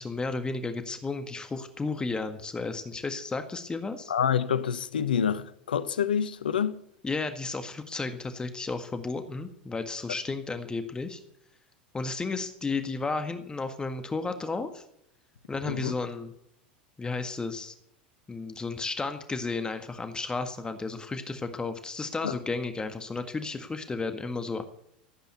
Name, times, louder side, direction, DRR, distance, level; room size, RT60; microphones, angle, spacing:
voice 1, 0.0-4.1 7.0-11.2 11.9-14.8 15.5-16.3 17.0-17.7 18.3-24.6, left 3 dB, 15° left, 1.7 m, -33 dB
voice 2, 4.1-6.7 15.7-15.9 22.2-22.4, left 8 dB, 80° left, 0.9 m, -27 dB
15.5 x 9.0 x 8.1 m
hypercardioid pair, 85°, 5 cm